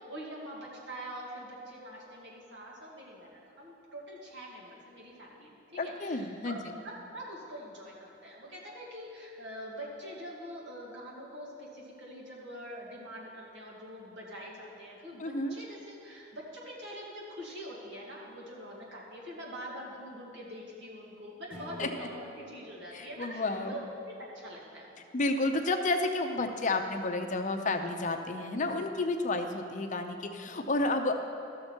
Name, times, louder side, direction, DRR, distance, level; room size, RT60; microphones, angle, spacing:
voice 1, 0.1-25.0 30.5-30.6, equal, 75° right, -3 dB, 2.1 m, -44 dB
voice 2, 5.8-6.8 15.2-15.5 21.8-21.9 22.9-23.8 25.1-31.1, left 2 dB, 45° left, 6 dB, 0.6 m, -31 dB
Acoustic guitar / Strum, 21.5-24.7, equal, 10° right, 1.9 m, -52 dB
13.5 x 6.6 x 4.4 m, 2.7 s
head